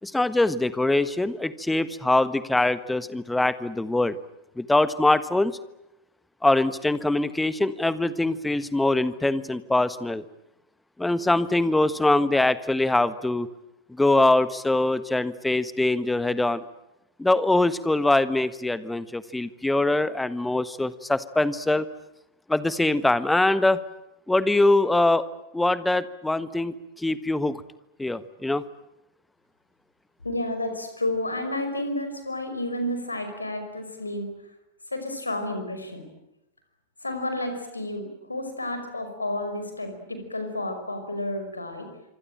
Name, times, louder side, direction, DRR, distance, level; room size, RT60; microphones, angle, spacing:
voice 1, 0.0-4.2 4.6-5.5 6.4-10.2 11.0-13.5 13.9-16.6 17.2-21.8 22.5-23.8 24.3-25.2 25.5-27.6 28.0-28.6, left 2 dB, 5° left, 15 dB, 1.4 m, -23 dB
voice 2, 30.2-34.3 34.9-36.1 37.0-41.9, left 1 dB, 80° left, 8 dB, 5.5 m, -31 dB
26.0 x 25.5 x 9.0 m, 0.89 s
figure-of-eight pair, 90°, 0 cm